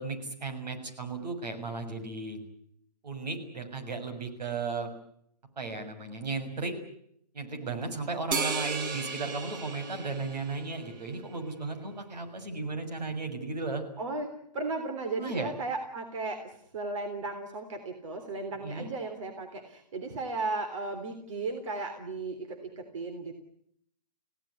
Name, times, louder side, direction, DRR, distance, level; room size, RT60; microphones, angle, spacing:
voice 1, 0.0-2.4 3.0-4.9 5.6-6.7 7.3-13.8 15.1-15.5 18.6-18.9, right 3 dB, 75° right, 7 dB, 6.8 m, -35 dB
sound 1, 8.3-11.0, right 4 dB, 30° right, 1.6 m, -35 dB
voice 2, 14.0-23.4, right 3 dB, 50° right, 6 dB, 3.5 m, -35 dB
28.0 x 17.0 x 9.8 m, 0.72 s
hypercardioid pair, 170°, 21 cm